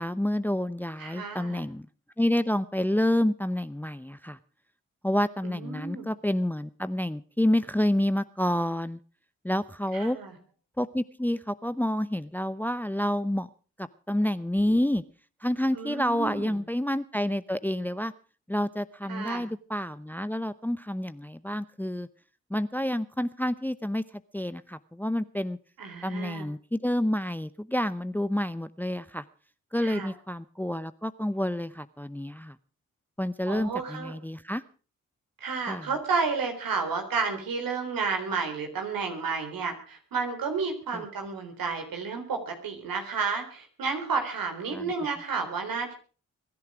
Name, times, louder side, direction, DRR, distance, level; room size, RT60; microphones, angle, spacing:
voice 1, 0.0-1.9 2.2-4.4 5.0-9.0 9.4-10.2 10.8-13.5 13.8-15.0 15.4-18.1 18.5-22.1 22.5-24.0 24.3-25.6 26.0-29.2 29.7-32.5 33.2-34.6 35.7-35.9 44.7-44.9, left 1 dB, 5° left, 15 dB, 0.8 m, -28 dB
voice 2, 1.0-1.7 5.4-6.1 9.9-10.4 15.7-16.6 19.1-19.5 25.8-26.4 29.8-30.1 33.5-34.1 35.4-45.9, right 5 dB, 75° right, 5 dB, 3.9 m, -31 dB
23.0 x 11.0 x 4.9 m, 0.39 s
supercardioid pair, 40°, 35 cm